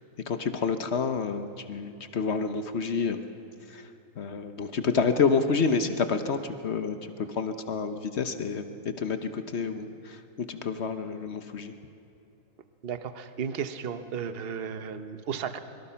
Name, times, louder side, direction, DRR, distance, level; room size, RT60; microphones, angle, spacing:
voice 1, 0.3-3.2 3.7-3.8 4.2-11.7, left 5 dB, 60° left, 9 dB, 0.7 m, -29 dB
voice 2, 12.8-15.6, right 7 dB, 50° right, 10 dB, 0.7 m, -34 dB
24.0 x 23.0 x 5.8 m, 2.7 s
omnidirectional pair, 2.3 m